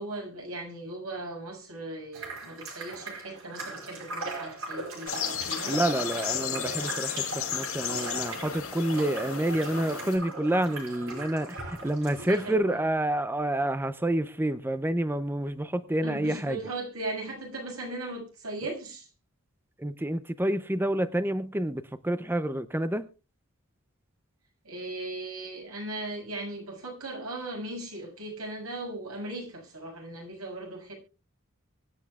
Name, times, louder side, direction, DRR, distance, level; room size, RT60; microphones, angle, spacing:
voice 1, 0.0-5.7 12.3-12.8 16.0-19.1 24.6-30.9, right 2 dB, 90° right, 6.8 m, -38 dB
sound 1, 2.1-12.5, right 3 dB, 65° right, 5.4 m, -39 dB
sound 2, 5.1-10.2, left 8 dB, 75° left, 4.8 m, -34 dB
voice 2, 5.7-16.6 19.8-23.1, right 1 dB, 10° right, 0.6 m, -28 dB
24.0 x 10.0 x 2.3 m
head